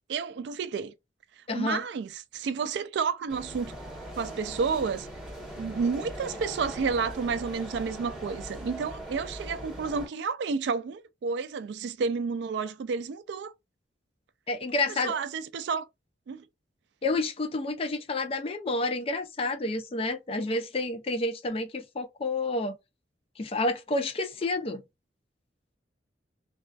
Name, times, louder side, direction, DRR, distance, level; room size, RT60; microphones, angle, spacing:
voice 1, 0.1-0.9 1.4-3.8 4.1-5.1 5.6-13.5 15.0-15.9 16.3-16.5, right 5 dB, 65° right, 0.3 m, -31 dB
voice 2, 1.5-1.8 14.5-15.2 17.0-22.8 23.4-24.8, left 2 dB, 30° left, 0.3 m, -29 dB
sound 1, 3.3-10.1, equal, 5° right, 1.1 m, -40 dB
2.3 x 2.3 x 2.3 m
head